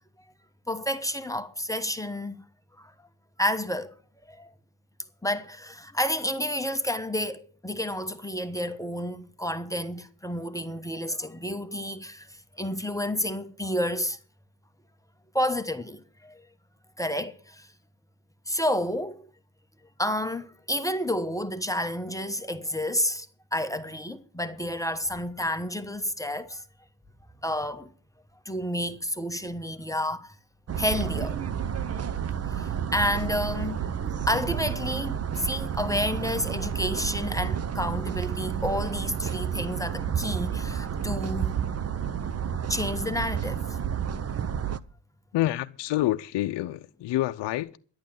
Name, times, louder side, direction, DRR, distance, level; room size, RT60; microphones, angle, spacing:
voice 1, 0.7-2.3 2.8-2.9 3.4-3.9 4.3-4.5 5.2-14.2 15.3-16.4 17.0-17.7 18.5-19.2 20.0-23.3 23.5-26.6 27.4-27.9 28.4-30.3 30.8-31.4 32.5-33.8 34.3-41.5 42.7-43.6, left 1 dB, 5° left, 1.1 m, -30 dB
sound 1, 30.7-44.8, right 8 dB, 30° right, 0.8 m, -30 dB
voice 2, 45.3-47.8, left 15 dB, 65° left, 0.7 m, -27 dB
12.0 x 8.6 x 7.6 m
cardioid pair, 80°, 46 cm